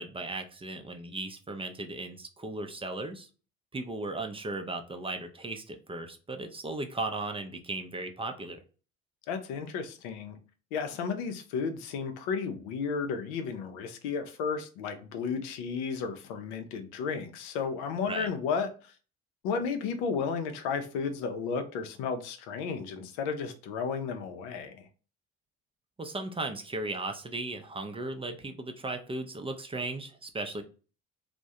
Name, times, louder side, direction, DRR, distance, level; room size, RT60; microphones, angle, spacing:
voice 1, 0.0-3.3 3.7-8.6 18.1-18.3 26.0-30.6, right 2 dB, 15° right, 5 dB, 0.4 m, -36 dB
voice 2, 9.3-10.4 10.7-18.9 19.4-24.9, left 5 dB, 85° left, 7 dB, 0.5 m, -33 dB
2.3 x 2.1 x 2.7 m, 0.36 s
supercardioid pair, 70°, 32 cm